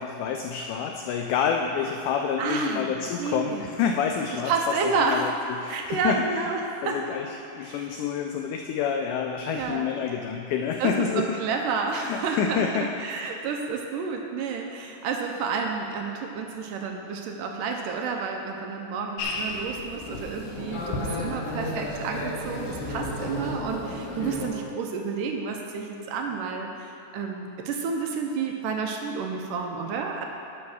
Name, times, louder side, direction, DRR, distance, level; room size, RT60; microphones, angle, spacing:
voice 1, 0.0-4.5 4.8-5.3 5.6-6.2 6.8-11.4 11.9-12.9 13.2-13.3, left 7 dB, 90° left, 3 dB, 1.7 m, -28 dB
voice 2, 2.4-3.7 4.5-5.2 5.7-7.0 7.6-7.9 9.5-9.9 10.8-30.3, right 4 dB, 80° right, 2 dB, 2.1 m, -30 dB
sound 1, 19.2-24.5, left 2 dB, 75° left, 2.7 m, -32 dB
11.5 x 5.7 x 6.1 m, 2.8 s
omnidirectional pair, 4.1 m